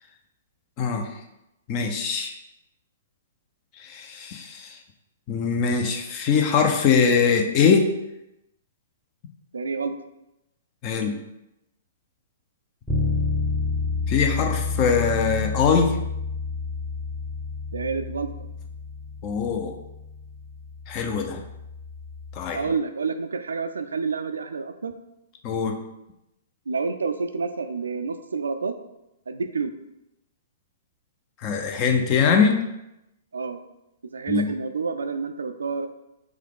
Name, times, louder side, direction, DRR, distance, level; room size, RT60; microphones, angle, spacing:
voice 1, 0.8-1.1 1.7-2.3 3.8-4.8 5.3-7.9 10.8-11.2 14.1-16.0 19.2-19.7 20.9-21.4 22.4-22.6 25.4-25.8 31.4-32.6 34.3-34.4, left 6 dB, 35° left, 5 dB, 0.6 m, -22 dB
voice 2, 9.5-9.9 17.7-18.3 22.5-24.9 26.7-28.8 29.3-29.7 33.3-33.6 34.1-35.9, right 5 dB, 75° right, 9 dB, 0.3 m, -28 dB
Bass guitar, 12.9-22.7, left 4 dB, 5° left, 0.8 m, -30 dB
4.5 x 2.3 x 3.6 m, 0.89 s
figure-of-eight pair, 115°, 0 cm